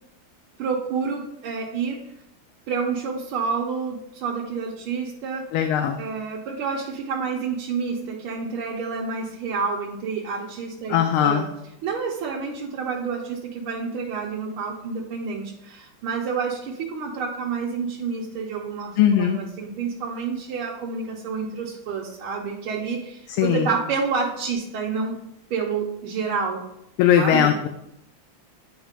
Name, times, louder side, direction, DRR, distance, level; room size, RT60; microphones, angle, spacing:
voice 1, 0.6-2.0 2.7-5.4 6.0-11.5 11.8-25.1 25.5-26.6 27.2-27.5, right 5 dB, 90° right, -3 dB, 1.7 m, -29 dB
voice 2, 5.5-6.0 10.9-11.5 19.0-19.4 23.3-23.7 27.0-27.7, left 9 dB, 85° left, 6 dB, 1.4 m, -19 dB
10.0 x 5.1 x 2.4 m, 0.82 s
omnidirectional pair, 2.3 m